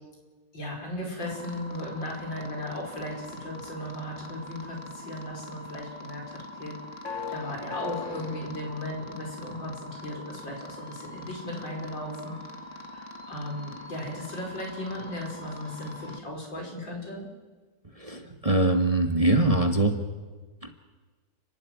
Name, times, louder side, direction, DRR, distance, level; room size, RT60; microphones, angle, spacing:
voice 1, 0.5-6.7 7.3-12.4 12.9-17.2, left 1 dB, 85° left, 0 dB, 5.9 m, -36 dB
sound 1, 1.2-16.2, left 3 dB, 45° left, 1.8 m, -42 dB
voice 2, 18.0-19.9 20.6-20.7, right 2 dB, 20° right, 5 dB, 1.2 m, -23 dB
29.5 x 12.0 x 9.4 m, 1.4 s
omnidirectional pair, 2.0 m